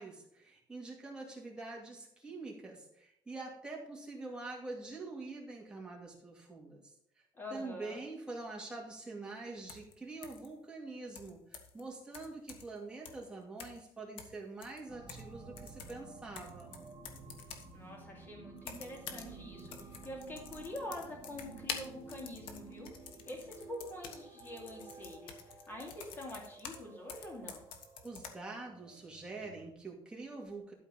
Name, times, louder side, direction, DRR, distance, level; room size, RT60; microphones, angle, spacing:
voice 1, 0.0-7.3 7.5-16.8 28.0-30.7, right 3 dB, 10° right, -1 dB, 2.2 m, -45 dB
voice 2, 7.3-8.0 17.7-19.7 20.0-22.9 23.3-27.6, left 1 dB, 25° left, -1 dB, 3.0 m, -45 dB
sound 1, 9.7-9.9 10.2-10.5 11.2-11.8 12.1-12.8 13.1-13.3 13.6-13.9 14.2-15.3 15.6-17.7 18.6-19.3 19.6-26.8 27.1-28.3, left 6 dB, 85° left, 1.4 m, -48 dB
sound 2, 14.9-29.7, right 4 dB, 35° right, 1.7 m, -53 dB
12.0 x 4.5 x 5.8 m, 0.72 s
cardioid pair, 160°, 9 cm